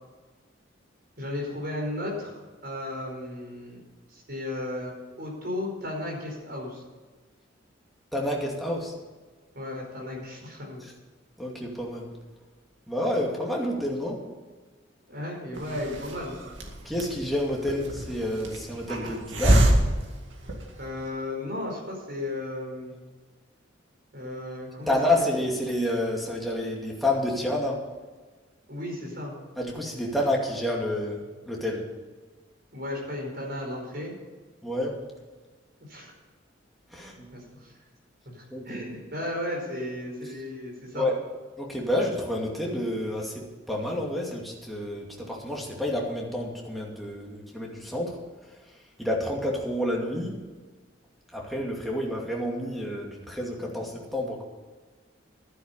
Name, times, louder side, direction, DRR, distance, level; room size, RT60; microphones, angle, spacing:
voice 1, 1.2-2.3 2.6-3.8 4.1-4.9 5.2-6.8 9.5-10.9 15.1-16.4 20.8-23.0 24.1-25.4 28.7-29.3 32.7-34.1 35.9-36.1 36.9-37.7 38.2-41.1, left 1 dB, 55° right, -1 dB, 4.9 m, -35 dB
voice 2, 8.1-8.9 11.4-12.1 12.9-14.2 16.8-19.7 24.9-27.8 29.6-31.8 34.6-35.0 36.9-37.3 38.5-38.9 40.9-41.1 41.6-48.2 49.0-50.3 51.3-54.4, left 1 dB, ahead, -2 dB, 2.4 m, -29 dB
Hiss, 15.5-21.0, right 1 dB, 80° right, 2.2 m, -27 dB
12.0 x 10.0 x 5.5 m, 1.4 s
head